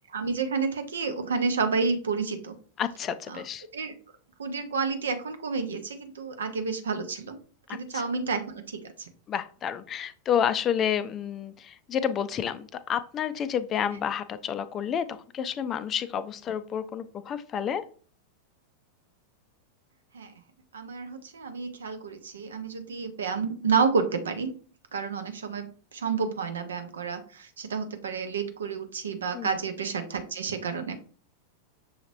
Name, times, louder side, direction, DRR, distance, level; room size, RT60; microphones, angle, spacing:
voice 1, 0.1-2.5 3.3-3.4 3.7-3.9 4.4-7.4 7.7-9.1 20.1-20.3 20.7-24.5 24.9-30.9, right 5 dB, 70° right, 7 dB, 0.7 m, -30 dB
voice 2, 2.8-3.6 7.9-8.0 9.3-17.8 29.3-29.5, left 8 dB, 30° left, 13 dB, 0.4 m, -30 dB
6.3 x 2.9 x 2.6 m, 0.41 s
figure-of-eight pair, 90°, 0 cm